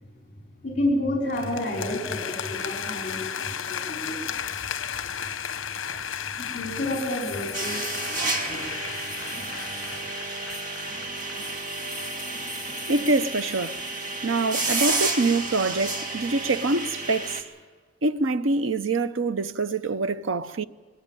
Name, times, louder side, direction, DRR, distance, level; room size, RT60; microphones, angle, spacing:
voice 1, 0.6-4.4 6.4-8.6 10.0-10.1, left 1 dB, 40° left, 4.6 m, -30 dB
sound 1, 1.3-11.6, left 8 dB, 70° left, 0.9 m, -34 dB
sound 2, 5.9-14.8, left 3 dB, ahead, 6.0 m, -44 dB
sound 3, 7.5-17.4, right 3 dB, 40° right, 2.1 m, -31 dB
voice 2, 12.9-13.8 14.2-17.4 18.0-20.6, right 3 dB, 75° right, 0.7 m, -25 dB
21.5 x 18.0 x 9.1 m
head